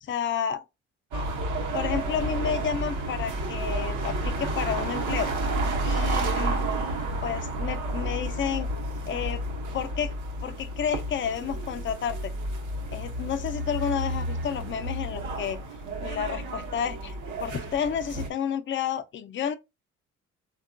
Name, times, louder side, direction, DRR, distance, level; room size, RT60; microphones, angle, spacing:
voice 1, 0.0-0.6 1.7-5.3 5.8-6.6 7.2-8.7 9.1-9.4 9.7-10.1 10.4-12.3 12.9-15.6 16.0-19.5, left 8 dB, 40° left, 0.4 m, -31 dB
sound 1, 1.1-18.3, right 1 dB, 75° right, 0.8 m, -31 dB
3.5 x 2.2 x 2.4 m
cardioid pair, 90°, 30 cm